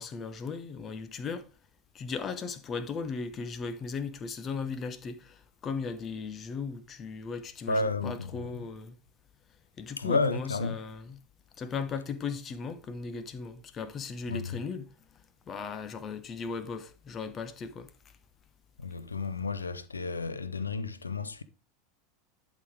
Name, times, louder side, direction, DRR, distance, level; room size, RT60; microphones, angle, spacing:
voice 1, 0.0-1.5 1.9-9.0 9.8-11.2 11.6-14.9 15.5-17.9, left 5 dB, 30° left, 1.1 m, -37 dB
voice 2, 7.7-8.6 10.0-10.8 14.3-14.6 18.8-21.4, left 3 dB, 80° left, 0.6 m, -31 dB
11.5 x 4.2 x 4.8 m
figure-of-eight pair, 80°, 0 cm